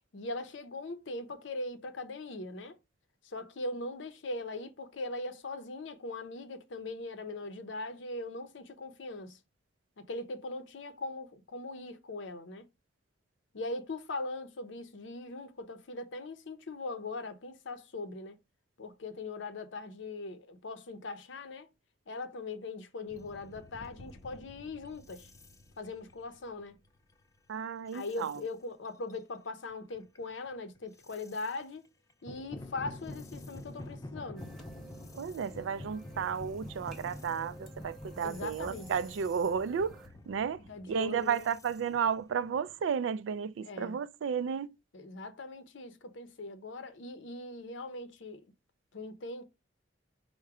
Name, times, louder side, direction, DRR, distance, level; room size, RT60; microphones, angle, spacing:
voice 1, 0.1-2.8 3.2-9.4 10.0-12.7 13.5-18.4 18.8-21.7 22.1-25.3 25.8-26.8 27.9-31.9 32.2-34.5 38.2-38.9 40.7-41.5 43.6-44.0 44.9-48.5 48.9-49.4, left 2 dB, 70° left, 0.6 m, -40 dB
sound 1, 23.1-27.4 27.8-28.4 28.8-29.2 29.7-31.6 32.1-42.9, left 1 dB, 15° left, 0.4 m, -48 dB
voice 2, 27.5-28.4 35.1-44.7, right 7 dB, 75° right, 0.3 m, -33 dB
sound 2, 34.4-40.1, right 1 dB, ahead, 0.8 m, -54 dB
4.6 x 2.2 x 4.7 m
head